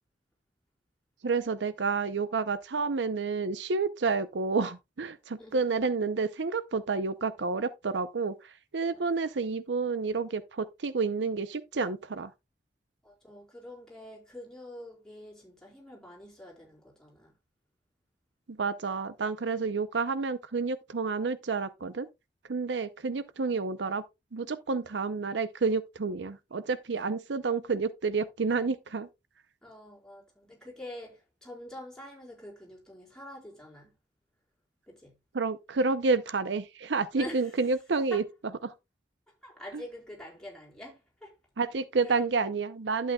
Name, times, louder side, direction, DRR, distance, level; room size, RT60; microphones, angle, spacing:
voice 1, 1.2-12.3 18.5-22.1 22.5-24.0 24.3-29.1 35.3-38.2 38.6-38.7 41.6-43.1, right 4 dB, 80° right, 0.6 m, -29 dB
voice 2, 13.0-17.3 29.6-34.0 34.9-35.1 37.2-37.6 38.1-38.2 39.3-41.4 42.0-42.2, left 1 dB, 5° left, 4.3 m, -46 dB
11.5 x 8.3 x 2.3 m
head